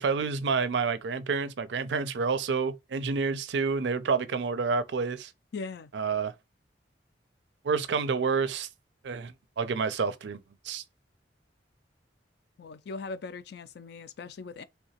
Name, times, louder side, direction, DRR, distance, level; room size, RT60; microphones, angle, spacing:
voice 1, 0.0-5.3 5.9-6.3 7.6-8.7 9.0-10.8, right 5 dB, 75° right, 0.4 m, -29 dB
voice 2, 5.5-5.9 12.6-14.6, left 4 dB, 65° left, 0.4 m, -39 dB
3.4 x 2.8 x 2.8 m
head